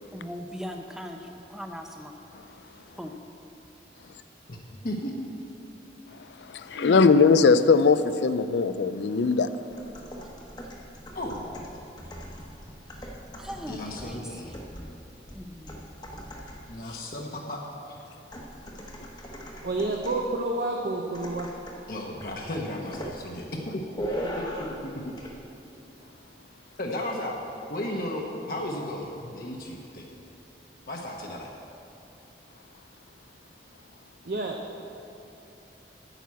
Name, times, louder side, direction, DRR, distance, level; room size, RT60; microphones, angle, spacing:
voice 1, 0.1-2.1 3.0-3.1 10.2-10.3 12.9-14.7 15.3-15.9, equal, 5° right, 3 dB, 0.6 m, -40 dB
voice 2, 4.8-5.3 6.7-7.0 11.1-11.4 13.7-14.6 16.7-17.6 17.9-18.0 21.9-23.8 24.8-25.1 26.8-27.4 27.7-30.1 30.9-31.5, left 1 dB, 50° left, -1 dB, 0.9 m, -34 dB
voice 3, 6.5-9.5, left 4 dB, 80° left, 13 dB, 0.4 m, -20 dB
sound 1, 9.7-16.8 18.3-20.3 21.1-21.9 22.2-22.4 22.9-23.2 24.0-24.9 25.2-25.4, equal, 25° left, 1.0 m, -39 dB
voice 4, 19.6-21.5 34.2-34.6, right 2 dB, 55° right, 1 dB, 0.7 m, -29 dB
9.1 x 5.9 x 8.3 m, 2.9 s
head